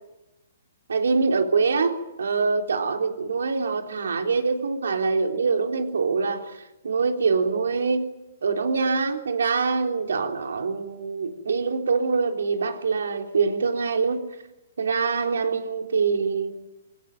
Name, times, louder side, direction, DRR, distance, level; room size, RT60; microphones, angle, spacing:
voice 1, 0.9-8.1 8.4-14.2 14.8-16.5, right 4 dB, 90° right, 4 dB, 3.8 m, -24 dB
23.0 x 17.5 x 9.3 m, 0.98 s
hypercardioid pair, 160°, 0 cm